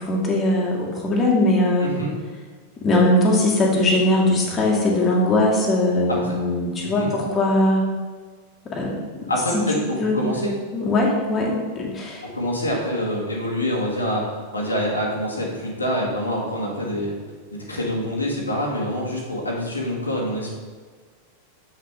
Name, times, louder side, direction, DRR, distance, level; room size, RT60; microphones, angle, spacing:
voice 1, 0.0-1.9 2.8-7.9 8.7-9.3 10.0-10.3 10.7-12.2, left 1 dB, 20° left, -2 dB, 1.7 m, -20 dB
voice 2, 1.8-2.1 6.1-6.3 6.8-7.1 9.3-10.5 12.2-17.2 17.5-20.5, equal, 80° left, -3 dB, 1.5 m, -26 dB
7.4 x 5.8 x 3.6 m, 1.5 s
figure-of-eight pair, 90°, 0 cm